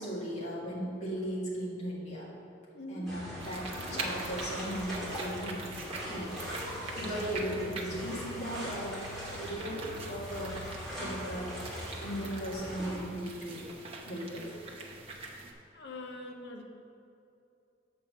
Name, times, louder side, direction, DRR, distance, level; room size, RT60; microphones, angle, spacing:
voice 1, 0.0-2.3 2.9-5.6 6.1-6.3 7.0-9.0 9.3-10.6 11.0-11.6 12.0-13.6 14.1-14.5, equal, 35° left, -7 dB, 1.8 m, -37 dB
voice 2, 2.7-3.1 15.7-16.6, left 2 dB, 60° left, 2 dB, 0.9 m, -43 dB
sound 1, 3.1-13.0, equal, ahead, 2.0 m, -40 dB
sound 2, 3.4-15.5, right 3 dB, 30° right, 0.8 m, -44 dB
7.2 x 4.3 x 6.6 m, 2.7 s
head